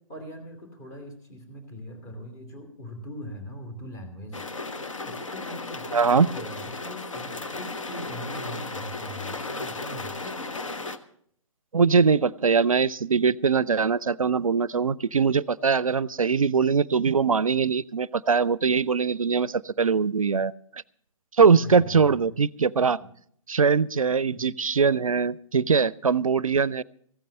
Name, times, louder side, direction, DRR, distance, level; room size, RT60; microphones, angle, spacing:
voice 1, 0.1-4.4 4.8-10.6 21.4-22.2 23.0-23.1 24.2-24.5, equal, 30° left, 5 dB, 2.8 m, -41 dB
sound 1, 4.3-11.0, left 3 dB, 65° left, 1.0 m, -35 dB
voice 2, 5.9-6.3 11.7-20.5 21.4-23.0 23.5-26.8, right 5 dB, 80° right, 23 dB, 0.4 m, -22 dB
15.0 x 9.2 x 6.4 m, 0.66 s
figure-of-eight pair, 130°, 17 cm